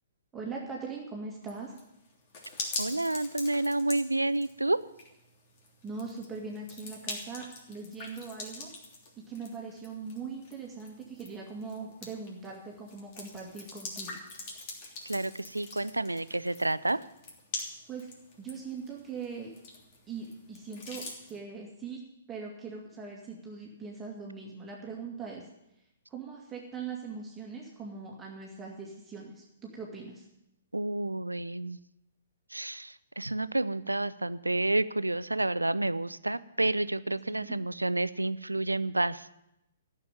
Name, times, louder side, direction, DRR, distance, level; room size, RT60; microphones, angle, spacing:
voice 1, 0.3-1.7 5.8-8.7 9.2-14.2 17.9-18.1 18.4-19.5 20.1-22.0 22.3-25.5 26.1-30.3 37.3-37.6, right 5 dB, 10° right, -3 dB, 2.2 m, -41 dB
sound 1, 1.5-21.4, left 3 dB, 35° left, 3.2 m, -44 dB
voice 2, 2.8-4.8 15.1-17.0 30.7-31.8 32.5-39.3, right 2 dB, 80° right, 16 dB, 0.5 m, -30 dB
14.0 x 7.2 x 9.3 m, 0.86 s
figure-of-eight pair, 120°, 0 cm